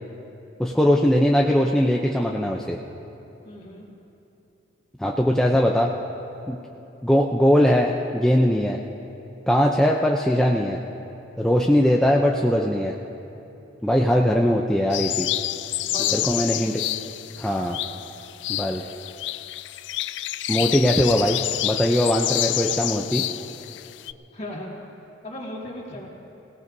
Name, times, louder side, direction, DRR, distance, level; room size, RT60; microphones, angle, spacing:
voice 1, 0.6-2.8 5.0-5.9 6.5-6.6 7.0-8.8 9.5-10.8 11.4-12.9 13.8-15.3 16.1-16.9 17.4-17.8 18.5-18.8 20.5-23.2, equal, 5° left, -1 dB, 0.5 m, -20 dB
voice 2, 3.4-3.9 11.7-12.0 15.8-16.3 17.8-18.0 20.5-20.8 24.3-24.7 25.2-26.1, left 1 dB, 35° left, -3 dB, 2.3 m, -37 dB
sound 1, 14.9-24.1, left 15 dB, 75° left, 0.3 m, -28 dB
26.5 x 17.5 x 2.7 m, 3.0 s
head